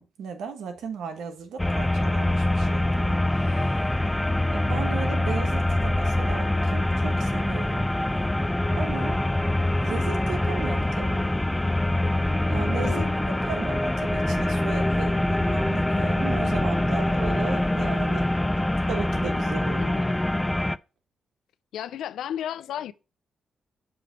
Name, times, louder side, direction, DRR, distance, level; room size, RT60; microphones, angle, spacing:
voice 1, 0.0-4.2 4.5-7.9 8.8-9.2 9.8-11.3 12.2-13.0 13.5-18.3 18.6-19.9, right 6 dB, 85° right, 1.2 m, -36 dB
sound 1, 1.6-20.8, left 1 dB, 10° left, 0.3 m, -24 dB
voice 2, 12.8-13.4 19.8-20.2 21.7-22.9, left 10 dB, 85° left, 0.4 m, -34 dB
6.9 x 3.1 x 5.7 m
cardioid pair, 70°, 0 cm